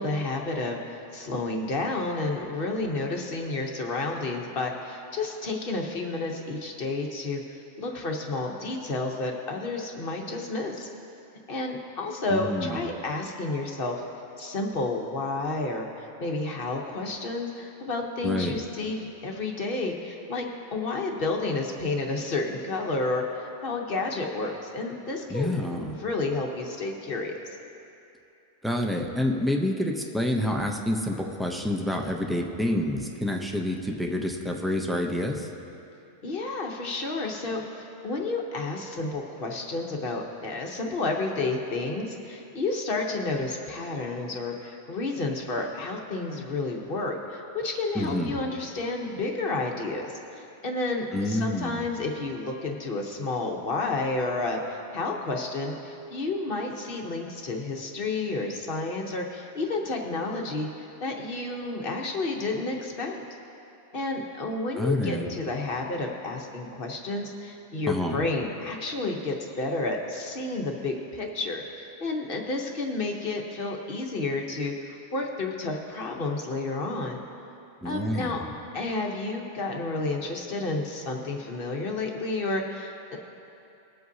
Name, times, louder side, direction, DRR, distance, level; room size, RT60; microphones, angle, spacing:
voice 1, 0.0-10.9 11.5-14.0 14.4-27.4 36.2-63.2 63.9-77.2 77.8-78.4 78.7-83.2, left 3 dB, 55° left, 1 dB, 1.1 m, -31 dB
voice 2, 12.3-12.8 18.2-18.5 25.3-26.0 28.6-35.5 47.9-48.4 51.1-51.9 64.8-65.3 67.9-68.2 77.8-78.4, left 1 dB, ahead, 1 dB, 0.4 m, -28 dB
20.5 x 7.8 x 2.7 m, 2.8 s
omnidirectional pair, 1.2 m